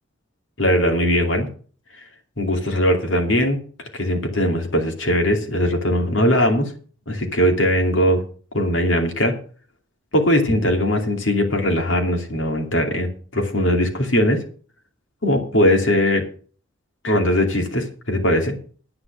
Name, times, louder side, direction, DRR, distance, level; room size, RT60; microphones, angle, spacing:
voice 1, 0.6-1.5 2.4-3.6 3.9-6.7 7.1-8.2 8.5-9.3 10.1-14.4 15.2-16.2 17.0-18.5, equal, 65° left, 3 dB, 2.8 m, -20 dB
9.8 x 9.7 x 6.2 m, 0.42 s
head